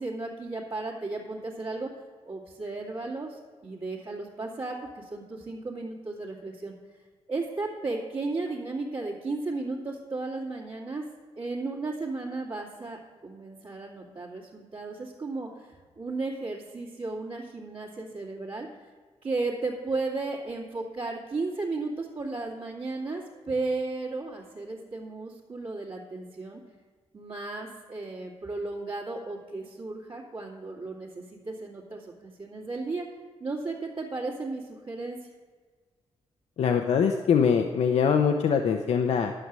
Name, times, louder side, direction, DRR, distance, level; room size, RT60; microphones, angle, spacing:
voice 1, 0.0-1.9 2.2-6.7 7.3-11.1 11.4-18.7 19.2-26.6 27.1-33.1 33.4-35.2, right 3 dB, 50° right, -9 dB, 2.4 m, -34 dB
voice 2, 36.6-39.3, left 6 dB, 80° left, 4 dB, 0.8 m, -23 dB
11.5 x 6.7 x 7.5 m, 1.5 s
cardioid pair, 110°, 11 cm